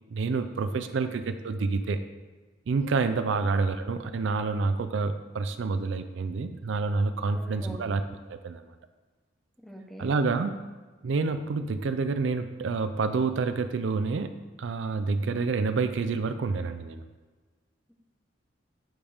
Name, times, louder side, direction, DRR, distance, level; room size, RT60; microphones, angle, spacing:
voice 1, 0.1-2.0 2.7-8.0 8.3-8.6 10.0-10.5 11.0-17.0, right 4 dB, 70° right, 10 dB, 0.4 m, -28 dB
voice 2, 7.3-7.9 9.6-10.1, equal, ahead, 0 dB, 0.9 m, -44 dB
9.2 x 3.5 x 5.0 m, 1.3 s
head